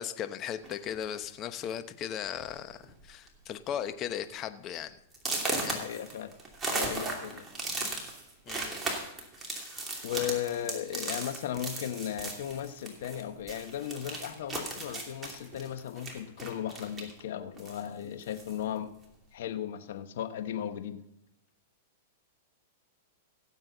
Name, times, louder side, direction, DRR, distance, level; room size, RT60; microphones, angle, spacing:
voice 1, 0.0-5.0 5.6-5.9 8.5-8.8 9.4-10.0, left 9 dB, 30° left, 11 dB, 0.9 m, -37 dB
sound 1, 0.6-1.0 1.8-1.9 2.3-2.5 2.8-3.3 3.7-3.8 4.3-4.4 5.1-13.2 13.5-17.2 17.6-18.6, right 2 dB, 15° right, 2.7 m, -36 dB
voice 2, 5.7-6.3 6.7-7.5 10.0-18.9 19.3-21.0, left 10 dB, 70° left, 9 dB, 1.1 m, -36 dB
17.0 x 7.7 x 4.0 m, 0.85 s
hypercardioid pair, 135°, 0 cm